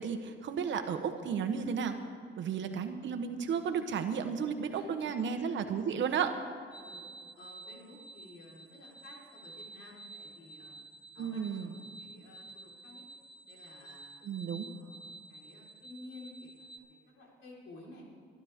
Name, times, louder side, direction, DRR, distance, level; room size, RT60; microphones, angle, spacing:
voice 1, 0.0-1.9 2.4-6.4 11.2-11.7 14.2-14.7, right 7 dB, 70° right, 7 dB, 1.1 m, -33 dB
voice 2, 4.7-5.5 6.8-7.0 7.4-10.8 11.1-13.1 13.5-14.2 14.7-18.0, left 2 dB, 80° left, -3 dB, 4.3 m, -53 dB
sound 1, 6.7-16.8, right 2 dB, 20° left, 1.6 m, -51 dB
24.0 x 11.5 x 3.6 m, 2.2 s
cardioid pair, 90°, 20 cm